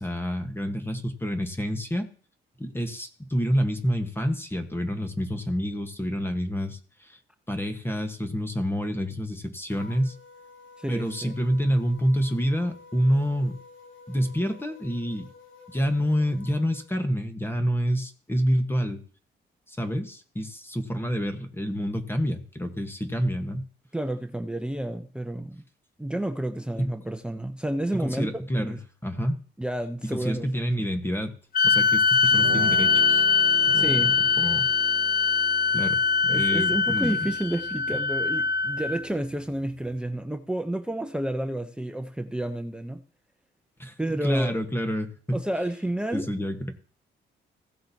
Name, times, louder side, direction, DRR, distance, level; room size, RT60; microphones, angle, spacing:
voice 1, 0.0-2.1 2.6-7.2 7.5-10.2 10.9-13.6 14.1-15.3 15.7-19.0 19.7-23.7 26.8-26.9 27.9-28.8 29.0-29.4 30.0-31.3 31.6-33.3 33.7-34.0 34.4-34.7 35.7-37.3 43.8-43.9 44.2-45.4 46.1-46.7, equal, 10° left, 7 dB, 1.2 m, -28 dB
sound 1, 9.7-16.9, left 4 dB, 80° left, 2.7 m, -51 dB
voice 2, 10.8-11.3 23.9-25.6 26.0-28.8 29.6-30.7 33.7-34.2 36.3-43.0 44.0-44.5 45.3-46.3, right 1 dB, 5° right, 8 dB, 0.7 m, -30 dB
sound 2, 31.5-39.0, left 5 dB, 50° left, 0.4 m, -22 dB
sound 3, 32.2-40.0, right 11 dB, 65° right, 0.9 m, -42 dB
16.0 x 7.5 x 2.8 m, 0.42 s
cardioid pair, 90°, 20 cm